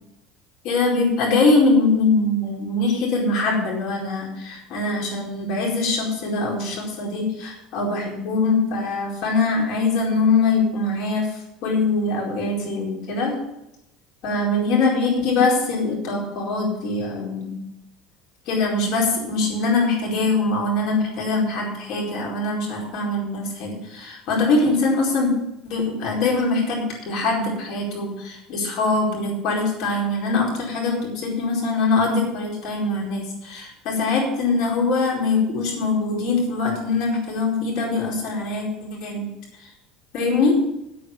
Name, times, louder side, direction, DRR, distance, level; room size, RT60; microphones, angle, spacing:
voice 1, 0.6-11.3 11.6-13.3 14.2-17.6 18.5-25.3 25.6-38.7 39.0-39.2 40.1-40.6, left 3 dB, 60° left, -1 dB, 4.6 m, -22 dB
8.9 x 8.6 x 6.9 m, 0.87 s
cardioid pair, 140°, 0 cm